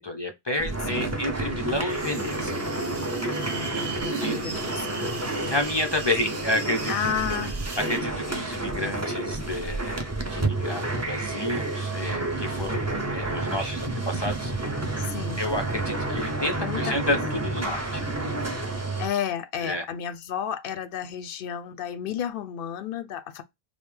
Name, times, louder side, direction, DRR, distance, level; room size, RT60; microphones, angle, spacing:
voice 1, 0.0-2.6 3.7-3.9 4.2-4.4 5.5-6.9 7.8-14.7 15.4-18.0 19.6-19.9, left 1 dB, 45° left, 0.3 m, -30 dB
sound 1, 0.6-19.1, right 2 dB, 20° right, 0.5 m, -30 dB
sound 2, 1.9-8.0, right 4 dB, 55° right, 1.1 m, -39 dB
voice 2, 3.3-5.6 6.9-7.6 15.0-15.4 16.6-17.2 19.0-23.4, left 9 dB, 65° left, 0.7 m, -32 dB
5.0 x 2.0 x 3.1 m
omnidirectional pair, 1.1 m